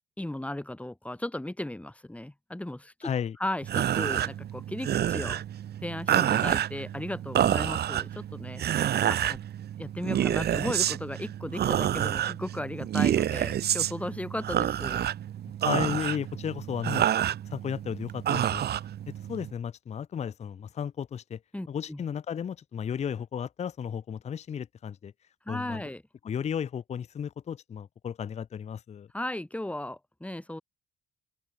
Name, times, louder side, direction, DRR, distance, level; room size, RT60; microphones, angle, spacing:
voice 1, 0.2-3.1 3.4-5.4 5.8-8.6 9.1-9.4 9.8-15.0 21.5-22.0 25.5-26.0 29.1-30.6, left 1 dB, 5° left, 2.8 m, -36 dB
voice 2, 3.0-3.4 15.6-17.1 17.5-18.6 19.3-21.4 21.7-25.1 25.5-25.8 26.2-29.1, left 8 dB, 35° left, 0.5 m, -34 dB
sound 1, 3.6-19.5, right 10 dB, 55° right, 0.7 m, -28 dB
open air
cardioid pair, 90°, 20 cm